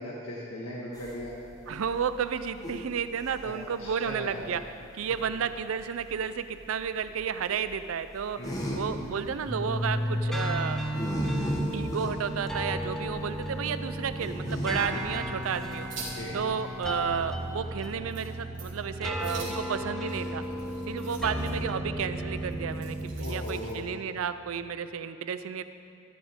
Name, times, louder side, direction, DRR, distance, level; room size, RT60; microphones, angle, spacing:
voice 1, 0.0-1.3 3.4-3.5 3.8-4.6 8.4-9.1 15.9-16.4 23.2-23.8, equal, 85° left, -6 dB, 1.7 m, -38 dB
sound 1, 0.9-17.5, equal, 15° left, 1.4 m, -38 dB
voice 2, 1.7-4.6 4.9-8.4 8.8-10.8 11.7-15.9 16.3-20.4 20.9-25.6, right 7 dB, 75° right, 11 dB, 0.4 m, -32 dB
sound 2, 9.5-23.1, equal, ahead, 1.0 m, -34 dB
sound 3, 15.1-16.2 16.6-16.7 17.2-17.3 17.6-17.9 18.1-18.3 18.5-18.8 19.2-21.5 22.4-23.9, right 4 dB, 60° right, 2.9 m, -45 dB
13.5 x 13.0 x 3.6 m, 2.6 s
head